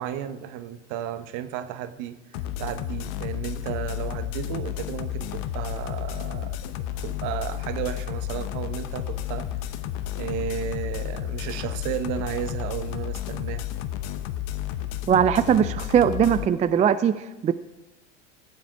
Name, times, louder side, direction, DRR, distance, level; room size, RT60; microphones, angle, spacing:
voice 1, 0.0-6.7 7.0-9.5 10.1-13.7, right 10 dB, 55° right, 11 dB, 1.1 m, -33 dB
sound 1, 2.3-16.5, left 12 dB, 60° left, 0.9 m, -32 dB
voice 2, 15.1-17.5, right 8 dB, 20° right, 13 dB, 0.4 m, -20 dB
15.5 x 7.2 x 4.6 m, 1.0 s
hypercardioid pair, 85°, 35 cm